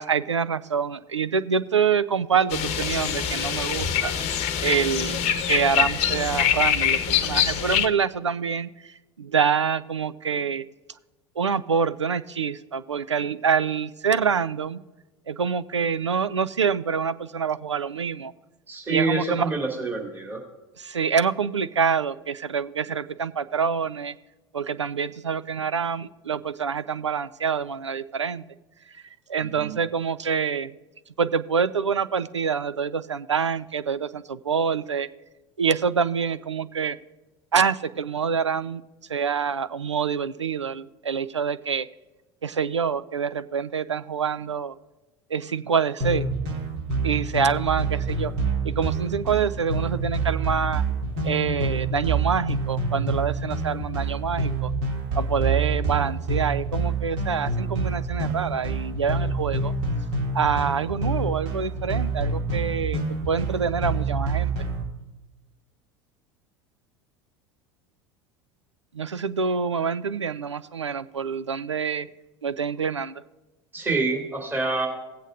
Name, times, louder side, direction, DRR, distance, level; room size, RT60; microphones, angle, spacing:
voice 1, 0.0-4.3 4.6-10.6 11.4-14.8 15.3-18.3 18.9-19.5 20.8-24.1 24.5-28.4 28.9-29.0 29.3-30.7 31.2-35.1 35.6-37.0 37.5-38.8 39.1-41.9 42.4-44.7 45.3-46.3 47.0-48.3 48.6-50.8 51.2-54.7 55.2-59.7 60.3-64.5 68.9-72.1 72.4-73.2, right 6 dB, 90° right, 14 dB, 0.4 m, -26 dB
sound 1, 2.5-7.9, left 9 dB, 45° left, 0.9 m, -24 dB
voice 2, 18.7-20.4 29.6-29.8 73.7-74.9, right 3 dB, 15° right, -1 dB, 2.5 m, -26 dB
sound 2, 46.0-64.8, right 3 dB, 55° right, 2.3 m, -27 dB
18.0 x 8.1 x 2.5 m, 1.1 s
figure-of-eight pair, 75°, 15 cm